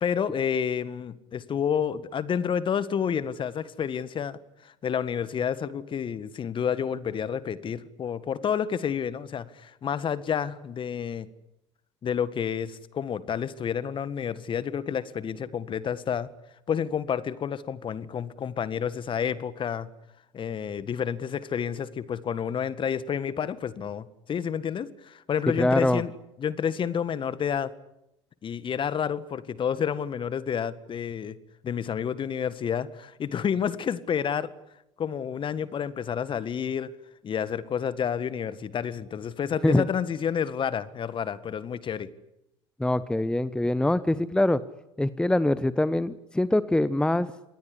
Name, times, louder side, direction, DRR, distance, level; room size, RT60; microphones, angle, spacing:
voice 1, 0.0-11.3 12.0-16.3 16.7-19.9 20.3-26.1 26.4-27.7 28.4-31.4 31.6-34.5 35.0-36.9 37.2-42.1, left 8 dB, 35° left, 15 dB, 1.8 m, -29 dB
voice 2, 25.6-26.0 39.6-39.9 42.8-44.6 45.0-47.3, left 1 dB, 5° left, 15 dB, 1.1 m, -23 dB
27.5 x 20.5 x 10.0 m, 0.88 s
figure-of-eight pair, 70°, 15 cm